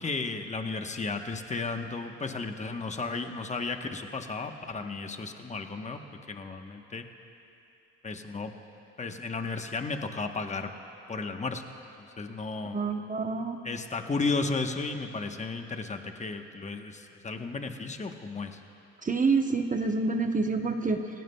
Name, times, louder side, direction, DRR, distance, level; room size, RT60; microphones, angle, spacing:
voice 1, 0.0-6.0 6.3-7.1 8.0-8.5 9.0-10.7 11.1-11.6 12.0-12.8 13.6-18.6, left 3 dB, 25° left, 5 dB, 1.0 m, -34 dB
voice 2, 12.7-13.6 19.0-21.0, right 4 dB, 25° right, 5 dB, 0.8 m, -27 dB
29.5 x 17.5 x 2.2 m, 2.8 s
cardioid pair, 90°, 30 cm